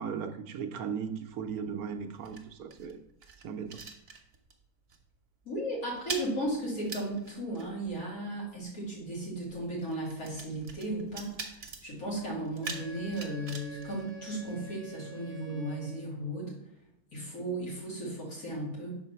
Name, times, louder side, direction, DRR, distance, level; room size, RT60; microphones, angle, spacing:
voice 1, 0.0-3.0 3.4-3.8, right 6 dB, 75° right, 1.0 m, -37 dB
sound 1, 1.3-4.6 4.9-5.2 5.4-14.8, right 5 dB, 45° right, 0.9 m, -45 dB
voice 2, 5.5-11.3 11.8-16.5 17.1-19.0, right 1 dB, 65° left, 2.6 m, -35 dB
Wind instrument woodwind instrument, 12.6-16.2, right 5 dB, 85° left, 1.6 m, -48 dB
5.7 x 4.5 x 5.6 m
omnidirectional pair, 1.7 m